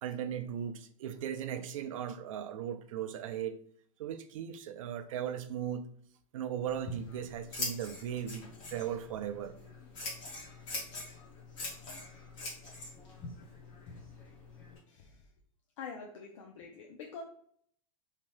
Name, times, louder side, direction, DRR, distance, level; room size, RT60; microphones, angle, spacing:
voice 1, 0.0-3.6 4.0-5.9 6.3-9.6, right 9 dB, 70° right, 0.4 m, -37 dB
Scissors, 6.6-14.8, left 2 dB, 30° left, 1.0 m, -43 dB
voice 2, 14.9-15.3 15.8-17.2, left 5 dB, 60° left, 0.5 m, -46 dB
2.8 x 2.2 x 3.2 m
supercardioid pair, 165°, 18 cm